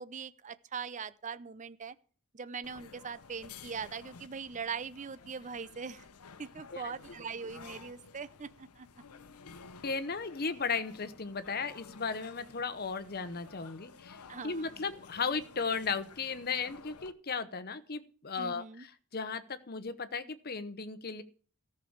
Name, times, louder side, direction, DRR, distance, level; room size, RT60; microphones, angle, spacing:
voice 1, 0.0-2.0 2.3-6.0 6.4-8.9 14.3-14.7 18.4-18.8, right 5 dB, 35° right, 0.6 m, -41 dB
sound 1, 2.6-17.1, left 5 dB, 90° left, 0.9 m, -53 dB
voice 2, 9.8-21.2, left 5 dB, 45° left, 1.0 m, -36 dB
14.0 x 6.8 x 7.2 m
head